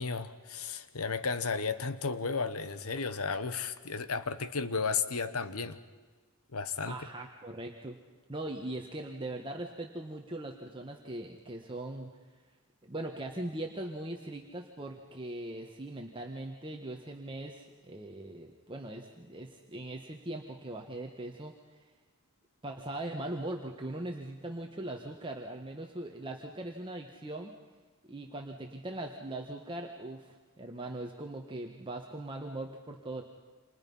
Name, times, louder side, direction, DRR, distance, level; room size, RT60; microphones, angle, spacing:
voice 1, 0.0-5.8 6.5-6.9, left 5 dB, 85° left, 12 dB, 1.2 m, -33 dB
voice 2, 6.8-8.0 8.3-12.1 12.8-21.5 22.6-27.5 28.1-33.2, right 1 dB, 25° right, 2 dB, 1.5 m, -40 dB
29.5 x 27.0 x 5.6 m, 1.3 s
head